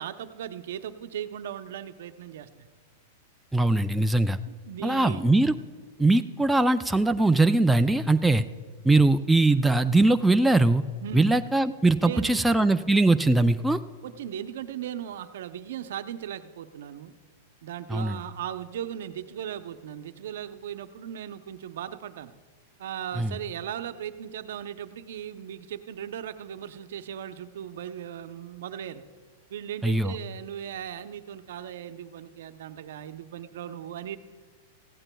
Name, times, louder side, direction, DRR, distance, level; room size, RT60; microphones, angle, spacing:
voice 1, 0.0-2.7 4.4-5.3 11.0-11.3 12.0-12.5 14.0-17.1 17.6-22.3 22.8-29.0 29.5-34.2, right 10 dB, 75° right, 10 dB, 0.7 m, -37 dB
voice 2, 3.5-4.4 4.8-5.5 6.0-8.4 8.8-10.8 11.1-13.8 17.9-18.2 23.2-23.3 29.8-30.1, right 2 dB, 5° right, 8 dB, 0.4 m, -21 dB
17.5 x 15.0 x 2.3 m, 1.5 s
hypercardioid pair, 125°, 0 cm